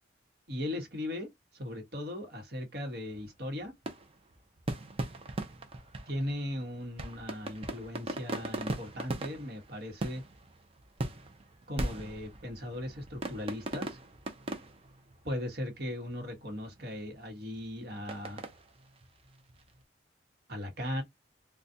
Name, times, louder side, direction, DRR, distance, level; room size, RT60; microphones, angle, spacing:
voice 1, 0.5-1.3 1.5-3.7 6.1-10.2 11.7-14.0 15.2-18.4 20.5-21.0, left 1 dB, 55° right, 1.2 m, -38 dB
sound 1, 3.1-19.8, right 1 dB, 30° right, 0.6 m, -40 dB
4.0 x 2.3 x 2.7 m
head